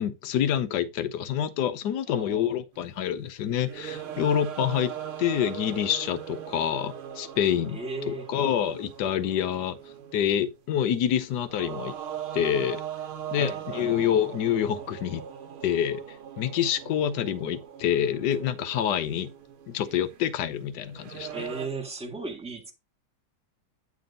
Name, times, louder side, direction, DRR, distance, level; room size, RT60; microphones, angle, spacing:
voice 1, 0.0-4.9 5.2-7.8 8.1-9.8 10.1-12.0 12.3-12.8 13.3-15.2 15.6-16.0 16.4-19.3 19.7-21.4, left 9 dB, 65° left, 1.1 m, -27 dB
voice 2, 2.1-2.5 7.7-8.3 13.3-13.9 21.3-22.7, right 3 dB, 5° right, 1.1 m, -36 dB
sound 1, 2.8-2.9 3.4-10.6 11.3-21.7, right 9 dB, 75° right, 1.8 m, -40 dB
9.5 x 3.4 x 5.2 m
omnidirectional pair, 2.4 m